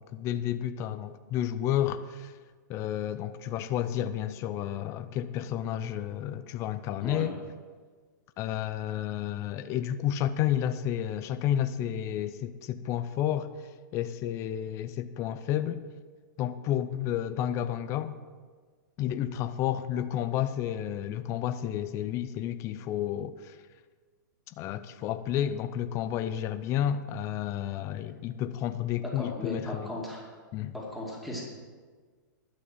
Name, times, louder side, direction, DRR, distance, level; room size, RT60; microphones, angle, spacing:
voice 1, 0.0-2.3 2.7-7.3 8.4-13.5 13.9-15.8 16.4-18.1 19.0-23.6 24.5-29.9 30.5-30.7, left 11 dB, 25° left, 0.5 m, -31 dB
voice 2, 29.0-30.3 30.7-31.4, left 1 dB, ahead, 2.3 m, -36 dB
12.0 x 6.2 x 7.7 m
hypercardioid pair, 135°, 11 cm